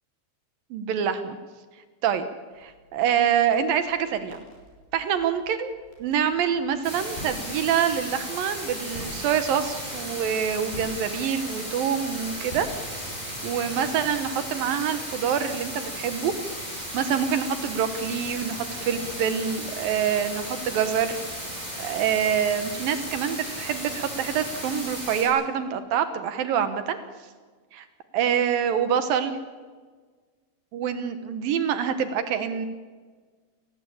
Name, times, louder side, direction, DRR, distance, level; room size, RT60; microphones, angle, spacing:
voice 1, 0.7-1.4 2.0-2.3 2.6-4.4 4.9-5.7 6.0-12.7 13.4-16.3 16.9-21.2 21.6-27.0 27.7-27.9 28.1-29.4 30.7-32.7, right 8 dB, 70° right, 10 dB, 2.8 m, -26 dB
sound 1, 2.5-13.4, left 1 dB, 80° left, 7.8 m, -47 dB
sound 2, 6.8-25.2, equal, 10° right, 8.0 m, -35 dB
28.0 x 19.0 x 8.8 m, 1.5 s
omnidirectional pair, 4.4 m